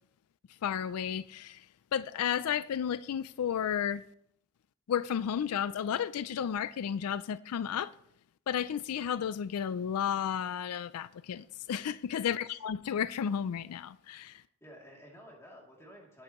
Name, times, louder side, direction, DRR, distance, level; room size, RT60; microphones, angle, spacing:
voice 1, 0.5-4.0 4.9-7.9 8.5-14.4, left 8 dB, 85° left, 0.4 m, -33 dB
voice 2, 12.2-12.6 14.6-16.2, equal, 10° left, 2.7 m, -53 dB
19.5 x 7.7 x 3.0 m
head